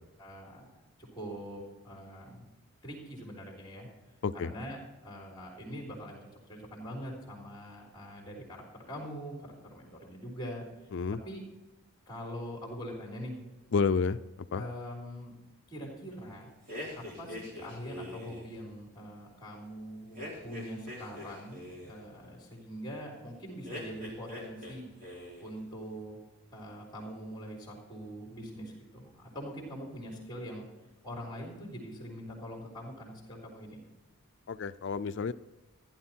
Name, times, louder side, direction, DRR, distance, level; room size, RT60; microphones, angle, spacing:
voice 1, 0.2-0.8 1.1-2.5 2.8-3.9 4.4-10.9 11.2-11.4 12.1-13.4 14.5-15.3 15.7-16.5 16.9-26.2 26.5-30.7 31.0-33.8, equal, 20° left, -1 dB, 3.5 m, -43 dB
voice 2, 13.7-14.2 14.5-14.6 34.5-35.3, left 5 dB, 55° left, 13 dB, 0.4 m, -29 dB
sound 1, 16.7-18.5 20.2-22.0 23.6-24.8 25.0-25.5, left 1 dB, 40° right, 4.1 m, -43 dB
15.0 x 11.5 x 4.4 m, 1.1 s
head